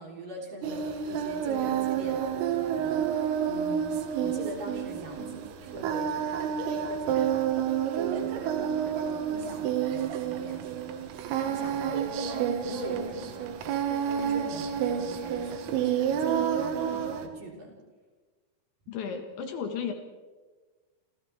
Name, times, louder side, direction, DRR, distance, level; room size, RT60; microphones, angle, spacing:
voice 1, 0.0-3.9 4.2-7.6 7.9-11.0 11.4-17.8, right 1 dB, 45° right, -2 dB, 4.8 m, -42 dB
Singing, 0.6-17.3, right 8 dB, 85° right, 4.2 m, -29 dB
voice 2, 18.9-19.9, left 6 dB, 70° left, 5 dB, 3.6 m, -34 dB
28.5 x 28.0 x 3.5 m, 1.3 s
omnidirectional pair, 5.8 m